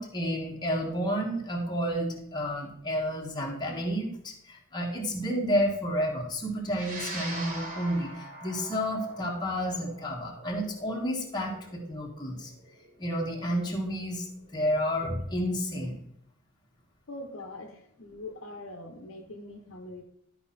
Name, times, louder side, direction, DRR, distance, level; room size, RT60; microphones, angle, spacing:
voice 1, 0.0-8.1 8.4-12.5 13.0-14.2 14.5-16.0, equal, 20° left, -1 dB, 1.4 m, -30 dB
sound 1, 6.7-15.2, right 2 dB, 40° right, 2.0 m, -43 dB
voice 2, 17.1-20.0, left 2 dB, 60° left, 3 dB, 1.0 m, -42 dB
12.0 x 4.9 x 4.2 m, 0.71 s
head